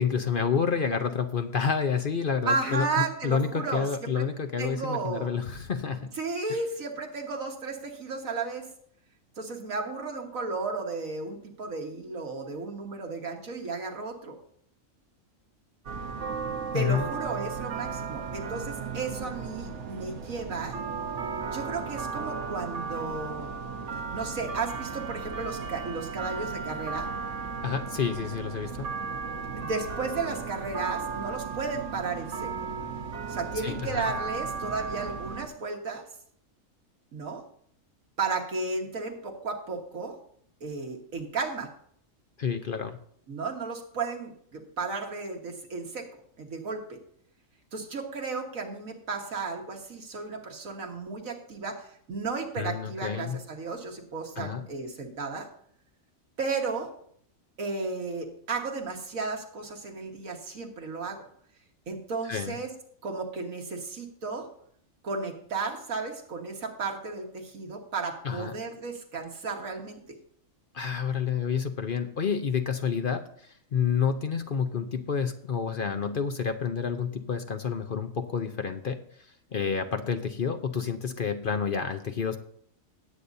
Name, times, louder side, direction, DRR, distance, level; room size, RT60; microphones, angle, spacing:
voice 1, 0.0-6.1 16.7-17.1 27.6-28.9 33.6-34.1 42.4-43.0 52.6-53.4 54.4-54.7 62.3-62.6 68.2-68.5 70.7-82.4, left 6 dB, 50° left, 7 dB, 0.8 m, -29 dB
voice 2, 2.5-3.9 4.1-4.2 4.6-5.3 6.2-8.7 9.4-14.4 16.7-20.8 21.5-23.5 24.1-27.1 29.6-32.5 33.3-36.0 37.1-37.4 38.2-40.2 40.6-41.7 43.3-46.1 46.4-47.0 47.7-55.5 56.4-56.9 57.6-61.2 61.9-62.7 63.0-64.5 65.0-70.0, right 4 dB, 85° right, 2 dB, 2.0 m, -34 dB
sound 1, 15.9-35.5, right 5 dB, 60° right, 1.3 m, -35 dB
18.0 x 8.4 x 2.7 m, 0.63 s
omnidirectional pair, 1.4 m